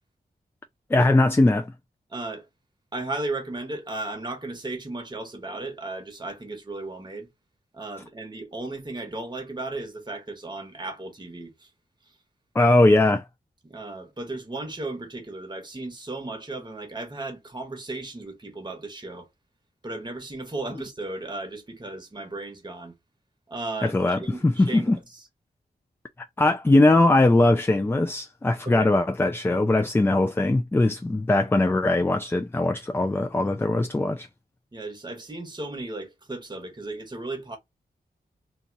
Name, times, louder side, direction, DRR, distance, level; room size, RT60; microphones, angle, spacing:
voice 1, 0.9-1.7 12.5-13.2 23.8-25.0 26.4-34.3, left 2 dB, 15° left, 0.4 m, -20 dB
voice 2, 2.1-2.5 2.9-7.3 7.7-11.7 13.6-19.3 19.8-22.9 23.5-25.2 28.6-28.9 34.7-37.6, right 2 dB, 25° right, 1.2 m, -35 dB
2.6 x 2.4 x 3.9 m
cardioid pair, 70°, 17 cm